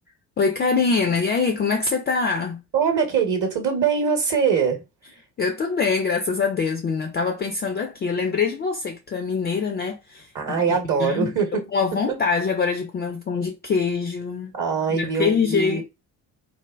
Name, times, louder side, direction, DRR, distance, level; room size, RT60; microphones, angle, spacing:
voice 1, 0.4-2.6 5.4-10.3 10.7-11.3 11.7-14.5 14.9-15.8, left 5 dB, 25° left, 0.4 m, -24 dB
voice 2, 2.7-4.8 10.3-12.0 14.5-15.8, right 6 dB, 40° right, 0.9 m, -23 dB
3.3 x 2.1 x 2.3 m
figure-of-eight pair, 45°, 46 cm